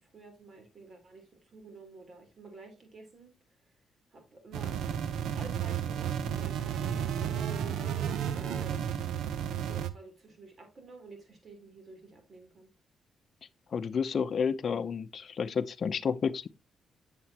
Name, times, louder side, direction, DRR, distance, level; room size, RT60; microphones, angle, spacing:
voice 1, 0.0-3.3 4.1-4.8 5.4-8.8 9.5-12.7, right 2 dB, 45° right, 3.4 m, -50 dB
sound 1, 4.5-9.9, right 9 dB, 85° right, 0.8 m, -32 dB
voice 2, 13.7-16.5, left 6 dB, 55° left, 0.6 m, -30 dB
8.0 x 7.4 x 2.9 m
cardioid pair, 80°, 0 cm